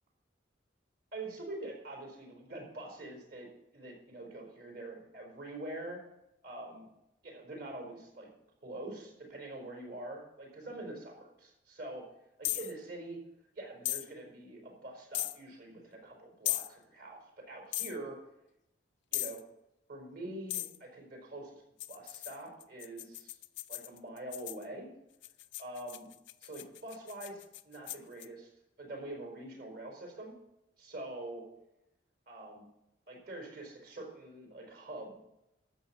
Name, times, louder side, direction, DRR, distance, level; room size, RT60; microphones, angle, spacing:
voice 1, 1.1-3.5 3.7-6.0 6.4-6.9 7.2-8.3 8.6-12.1 12.4-13.2 13.5-18.2 19.1-19.4 19.9-21.5 21.9-23.4 23.7-24.9 25.6-26.1 26.4-28.5 28.8-30.3 30.8-31.5 32.3-32.7 33.1-35.2, right 2 dB, 55° right, 0 dB, 4.5 m, -45 dB
sound 1, 12.4-12.7 13.8-14.1 15.1-15.4 16.4-16.7 17.7-18.0 19.1-19.4 20.5-20.8 21.8-24.6 25.2-28.3, left 15 dB, 70° left, 0.5 m, -37 dB
13.0 x 7.3 x 6.8 m, 0.85 s
head